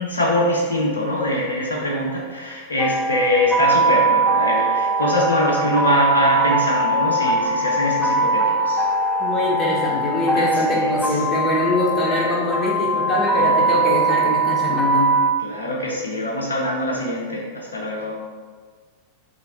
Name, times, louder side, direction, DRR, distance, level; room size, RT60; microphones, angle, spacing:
voice 1, 0.0-8.9 10.3-11.2 15.4-18.1, left 1 dB, 70° left, -3 dB, 0.5 m, -23 dB
sound 1, 2.8-15.3, right 2 dB, ahead, 0.4 m, -21 dB
voice 2, 9.2-15.1, left 1 dB, 25° left, -4 dB, 0.9 m, -23 dB
3.9 x 2.8 x 4.2 m, 1.5 s
figure-of-eight pair, 90°, 0 cm